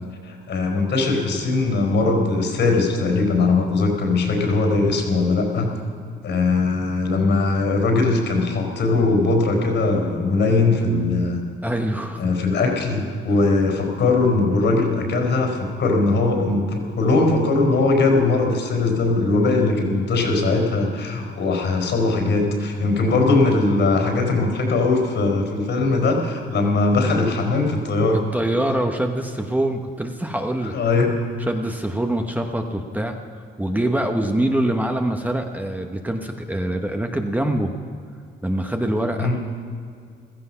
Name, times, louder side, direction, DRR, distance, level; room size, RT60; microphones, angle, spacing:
voice 1, 0.2-5.7 6.2-11.4 12.2-28.2 30.7-31.2 39.2-39.4, left 3 dB, 65° left, 3 dB, 4.5 m, -20 dB
voice 2, 11.6-12.2 28.3-30.7 31.4-33.2 33.6-37.7 38.4-39.3, right 1 dB, 10° right, 4 dB, 1.1 m, -24 dB
15.5 x 14.0 x 5.8 m, 2.2 s
cardioid pair, 90°, 20 cm